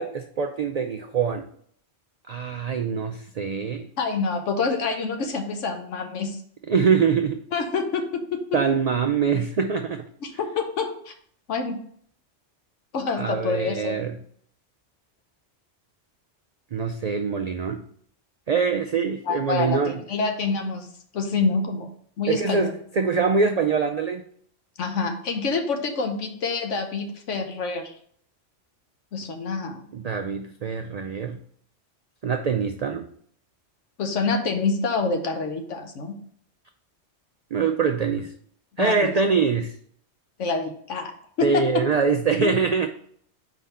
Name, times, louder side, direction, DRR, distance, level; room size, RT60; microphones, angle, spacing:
voice 1, 0.0-1.5 2.3-3.9 6.7-7.4 8.5-10.0 13.2-14.1 16.7-17.8 18.5-20.0 22.3-24.2 29.9-31.4 32.2-33.1 37.5-38.3 38.8-39.7 41.4-42.9, right 5 dB, 80° right, 6 dB, 0.3 m, -24 dB
voice 2, 4.0-6.4 7.5-8.4 10.2-11.1 11.5-11.8 12.9-14.0 19.3-20.9 21.1-21.9 22.2-22.7 24.8-27.9 29.1-29.8 34.0-36.2 38.8-39.1 40.4-41.1 41.4-41.6 42.4-42.5, left 4 dB, 85° left, 5 dB, 1.2 m, -27 dB
5.0 x 3.9 x 5.4 m, 0.62 s
omnidirectional pair, 1.2 m